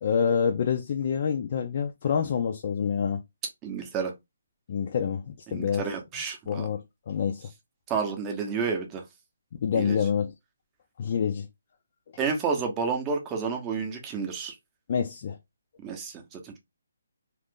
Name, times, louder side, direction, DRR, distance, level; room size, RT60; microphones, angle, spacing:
voice 1, 0.0-3.2 4.7-5.8 6.5-7.5 9.6-10.3 11.0-11.5 14.9-15.4, left 7 dB, 40° left, 0.4 m, -27 dB
voice 2, 3.6-4.1 5.5-6.7 7.9-9.0 9.7-10.1 12.2-14.6 15.8-16.6, right 5 dB, 15° right, 0.7 m, -30 dB
2.5 x 2.5 x 3.5 m
hypercardioid pair, 160°, 0 cm